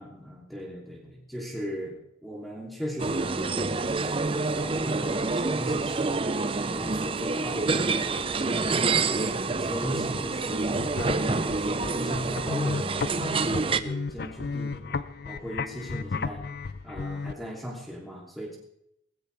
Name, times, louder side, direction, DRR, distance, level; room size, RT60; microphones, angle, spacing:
voice 1, 0.0-6.2 6.6-8.3 8.8-10.7 11.1-16.4 16.8-18.6, equal, ahead, -3 dB, 3.0 m, -38 dB
sound 1, 3.0-13.8, right 3 dB, 30° right, 0.5 m, -27 dB
sound 2, 10.6-17.3, left 4 dB, 55° left, 0.5 m, -34 dB
19.0 x 16.0 x 3.4 m, 0.78 s
head